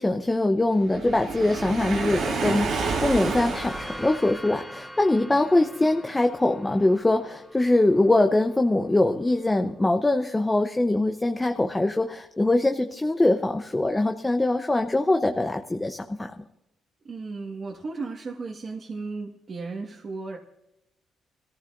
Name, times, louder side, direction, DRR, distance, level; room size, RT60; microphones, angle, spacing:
voice 1, 0.0-16.3, left 2 dB, 15° left, 5 dB, 0.8 m, -23 dB
Waves surf, 0.9-4.4, right 4 dB, 70° right, 2.5 m, -29 dB
sound 1, 2.6-10.1, equal, ahead, 3.2 m, -44 dB
voice 2, 17.0-20.4, right 3 dB, 40° right, -1 dB, 1.7 m, -35 dB
24.0 x 14.5 x 2.6 m, 0.89 s
cardioid pair, 90°, 0 cm